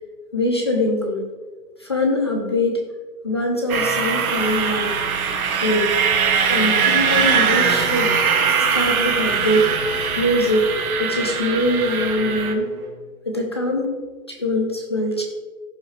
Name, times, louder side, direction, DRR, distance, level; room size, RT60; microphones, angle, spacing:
voice 1, 0.3-1.3 1.8-2.8 3.2-4.9 5.6-5.9 6.5-8.2 8.6-9.7 10.2-12.7 13.3-13.9 14.3-15.2, left 1 dB, 20° left, 2 dB, 0.4 m, -22 dB
sound 1, 3.7-12.5, right 6 dB, 85° right, 1.4 m, -21 dB
Bowed string instrument, 7.5-13.2, right 3 dB, 25° right, 1.0 m, -37 dB
15.5 x 5.4 x 3.2 m, 1.4 s
hypercardioid pair, 165°, 42 cm